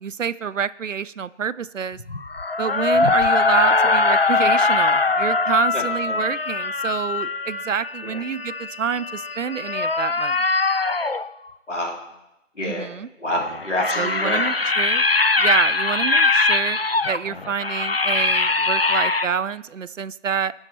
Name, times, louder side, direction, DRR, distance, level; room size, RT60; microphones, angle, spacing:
voice 1, 0.0-2.0 2.6-10.5 12.6-13.1 13.9-15.0 15.4-16.8 17.1-20.5, right 7 dB, 75° right, 17 dB, 0.5 m, -27 dB
sound 1, 2.0-11.3 13.4-19.3, left 3 dB, 50° left, 0.4 m, -21 dB
voice 2, 5.7-6.2 8.0-8.2 11.7-12.0 12.5-12.9 13.2-14.4, left 1 dB, 65° left, -2 dB, 3.3 m, -27 dB
18.0 x 6.4 x 4.3 m, 0.91 s
figure-of-eight pair, 165°, 38 cm